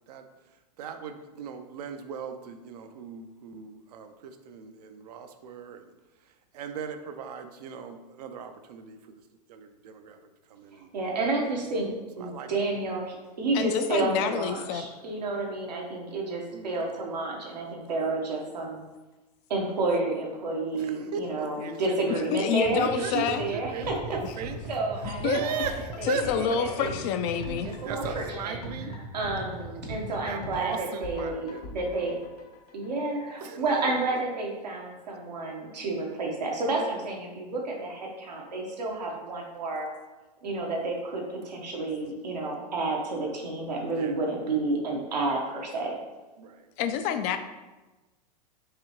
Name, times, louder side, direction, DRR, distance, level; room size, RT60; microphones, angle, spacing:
voice 1, 0.8-5.9 6.5-9.0 9.5-10.2 10.5-10.9 12.2-12.5 16.5-16.9 20.7-22.2 22.8-23.2 23.5-24.6 25.2-26.2 27.8-28.9 29.5-32.2 33.4-33.7 44.0-44.2 46.4-46.7, right 6 dB, 70° right, 8 dB, 0.5 m, -38 dB
voice 2, 10.9-11.9 12.2-18.8 19.5-24.2 24.7-25.7 26.0-26.9 27.6-32.1 32.7-39.9 40.4-45.9, right 2 dB, 90° right, -1 dB, 1.0 m, -30 dB
voice 3, 13.5-14.9 22.3-23.5 25.2-25.4 26.0-27.7 46.8-47.4, left 8 dB, 45° left, 8 dB, 0.4 m, -28 dB
sound 1, 22.7-30.6, right 3 dB, 30° right, 0.7 m, -41 dB
sound 2, 23.4-33.3 33.6-33.7, left 2 dB, 70° left, 0.8 m, -42 dB
4.8 x 2.7 x 3.0 m, 1.1 s
hypercardioid pair, 110°, 21 cm